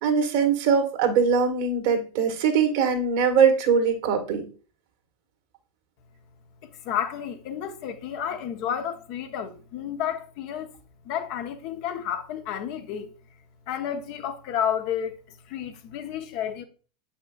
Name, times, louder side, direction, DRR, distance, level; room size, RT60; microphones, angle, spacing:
voice 1, 0.0-4.4, right 6 dB, 60° right, 1.6 m, -22 dB
voice 2, 6.6-10.7 11.0-13.1 13.7-15.1 15.5-16.6, left 9 dB, 55° left, 0.9 m, -31 dB
8.0 x 5.5 x 2.4 m
hypercardioid pair, 85°, 0 cm